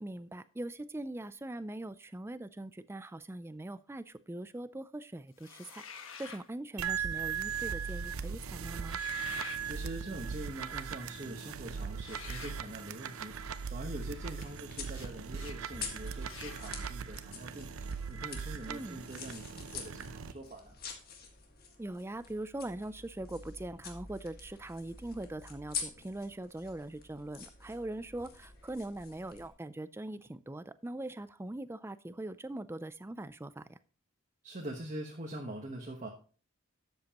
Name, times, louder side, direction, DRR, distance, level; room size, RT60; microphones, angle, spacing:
voice 1, 0.0-5.8 6.2-9.0 18.7-19.0 21.8-33.8, right 1 dB, 10° right, 14 dB, 0.4 m, -41 dB
sound 1, 5.4-6.5 8.8-9.6 12.0-12.6 14.9-15.1 15.3-15.6 16.2-16.6, left 6 dB, 65° left, 1.2 m, -47 dB
sound 2, 6.8-20.3, right 6 dB, 80° right, 0.6 m, -39 dB
voice 2, 9.6-13.4 13.7-17.7 18.1-20.7 34.4-36.1, right 1 dB, 35° right, 0 dB, 1.2 m, -43 dB
sound 3, 13.9-29.5, left 6 dB, 45° left, 1.7 m, -47 dB
12.0 x 7.9 x 2.9 m, 0.39 s
head